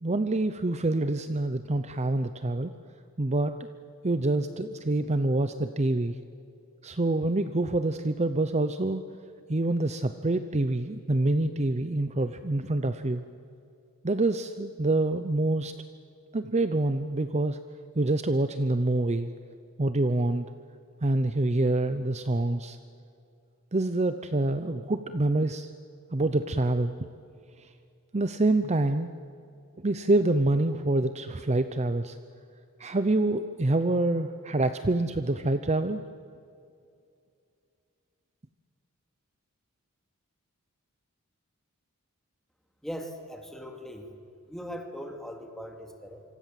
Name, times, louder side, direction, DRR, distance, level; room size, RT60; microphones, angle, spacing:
voice 1, 0.0-2.7 3.2-3.5 4.0-6.1 6.8-9.0 9.5-13.2 14.0-15.7 16.3-17.6 18.0-19.3 19.8-20.5 21.0-22.8 23.7-25.7 26.1-26.9 27.6-27.7 28.1-29.1 29.8-32.2 32.8-36.0, right 2 dB, 30° right, 10 dB, 0.7 m, -26 dB
voice 2, 42.8-44.1 44.5-46.2, equal, ahead, 4 dB, 2.6 m, -39 dB
26.5 x 25.0 x 7.7 m, 2.4 s
head